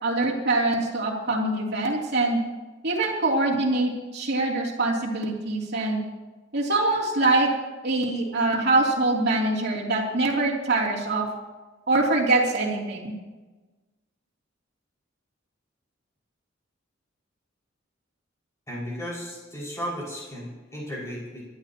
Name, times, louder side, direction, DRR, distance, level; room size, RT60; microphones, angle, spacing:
voice 1, 0.0-2.4 2.8-6.0 6.5-7.5 7.8-11.3 11.9-13.1, right 2 dB, 55° right, -3 dB, 2.9 m, -24 dB
voice 2, 18.7-21.4, equal, 15° left, -6 dB, 5.4 m, -35 dB
25.5 x 11.5 x 2.9 m, 1.2 s
head